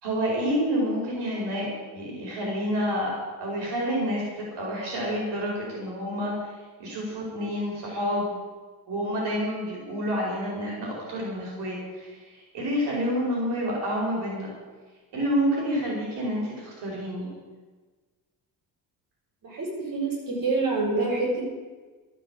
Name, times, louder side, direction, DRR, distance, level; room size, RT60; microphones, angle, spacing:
voice 1, 0.0-6.5 6.8-8.3 8.9-14.5 15.1-17.3, equal, 85° right, -3 dB, 5.1 m, -28 dB
voice 2, 19.4-21.4, right 3 dB, 55° right, -2 dB, 6.3 m, -26 dB
13.0 x 10.5 x 8.3 m, 1.3 s
cardioid pair, 125°, 39 cm